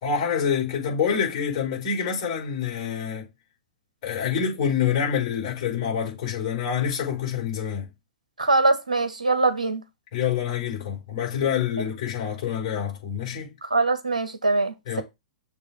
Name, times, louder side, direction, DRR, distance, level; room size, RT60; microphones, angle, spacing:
voice 1, 0.0-3.3 4.0-7.9 10.1-13.5 14.9-15.0, left 7 dB, 40° left, 4.5 m, -26 dB
voice 2, 8.4-9.8 13.6-15.0, right 3 dB, 75° right, 1.3 m, -23 dB
6.6 x 3.8 x 4.6 m
figure-of-eight pair, 105°, 4 cm